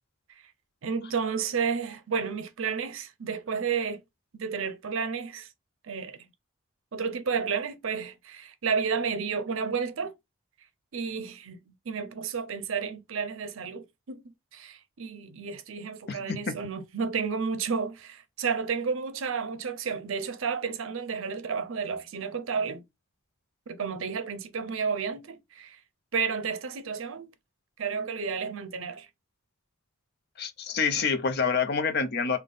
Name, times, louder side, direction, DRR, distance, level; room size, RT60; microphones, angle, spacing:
voice 1, 0.8-4.0 4.4-5.5 5.8-6.2 6.9-10.1 10.9-22.8 23.7-25.8 26.1-27.3 27.8-29.1, right 6 dB, 75° right, 0.5 m, -31 dB
voice 2, 16.1-16.5 30.4-32.4, left 5 dB, 50° left, 0.5 m, -27 dB
3.5 x 2.2 x 3.7 m
head